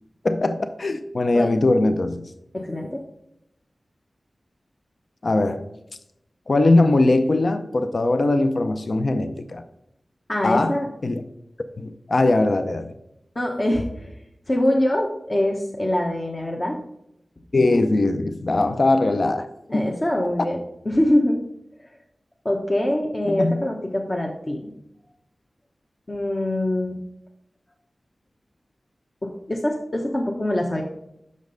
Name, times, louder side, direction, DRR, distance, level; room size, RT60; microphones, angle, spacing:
voice 1, 0.2-2.3 5.2-5.7 6.5-9.6 10.4-11.2 11.8-12.9 17.5-19.5 19.7-20.0 23.2-23.7, left 2 dB, 60° left, 9 dB, 0.5 m, -21 dB
voice 2, 2.5-3.0 10.3-10.9 13.3-14.2 14.5-16.8 19.7-20.6 20.9-21.4 22.4-24.7 26.1-27.0 29.2-30.8, left 1 dB, 35° left, 0 dB, 0.9 m, -24 dB
6.5 x 5.1 x 3.9 m, 0.80 s
wide cardioid pair, 55°, 0 cm